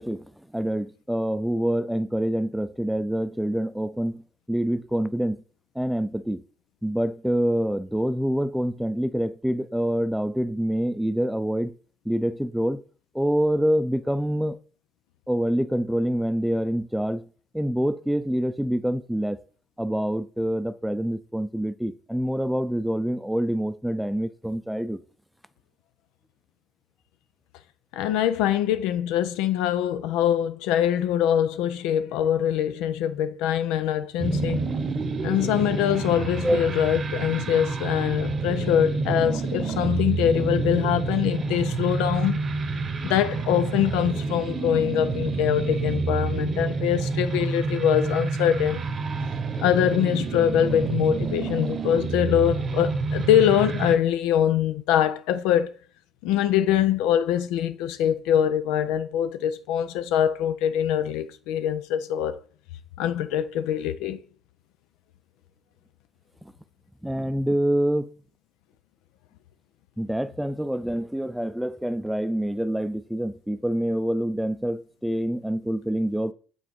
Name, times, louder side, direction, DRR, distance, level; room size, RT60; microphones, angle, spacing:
voice 1, 0.0-4.2 4.5-5.4 5.8-6.4 6.8-11.7 12.1-12.8 13.1-14.6 15.3-17.2 17.5-19.4 19.8-25.0 36.4-36.7 66.4-66.5 67.0-68.1 70.0-76.3, equal, ahead, 0.5 m, -26 dB
voice 2, 27.9-34.7 35.2-42.4 43.0-48.8 49.6-55.7 56.2-62.4 63.0-64.2, left 10 dB, 80° left, 0.3 m, -23 dB
sound 1, 34.2-54.0, right 4 dB, 50° right, 0.8 m, -28 dB
6.0 x 3.8 x 4.6 m
hypercardioid pair, 50°, 0 cm